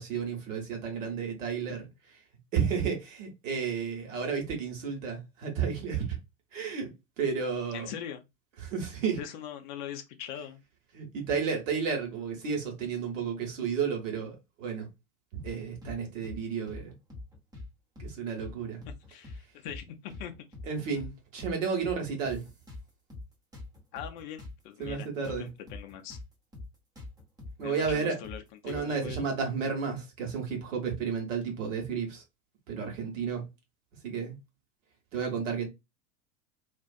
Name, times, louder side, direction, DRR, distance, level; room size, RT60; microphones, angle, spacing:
voice 1, 0.0-1.9 2.5-6.2 6.5-6.9 7.2-7.9 8.6-9.2 10.9-14.9 15.4-16.9 18.0-18.8 20.7-22.4 24.8-25.5 27.6-28.2 28.6-32.2 32.7-33.4 34.0-34.4 35.1-35.7, right 6 dB, 55° right, 1.2 m, -32 dB
voice 2, 7.7-8.2 9.2-10.6 19.1-20.3 23.9-26.2 27.6-29.3, left 9 dB, 35° left, 0.4 m, -41 dB
sound 1, 15.4-16.0 16.2-16.4 16.7-17.7 18.0-18.1 18.4-19.4 19.7-19.8 20.1-21.1 21.4-21.5 21.8-23.3 23.5-26.3 26.5-26.7 27.0-29.0, left 2 dB, 10° right, 0.6 m, -44 dB
2.5 x 2.4 x 2.3 m
figure-of-eight pair, 85°, 45 cm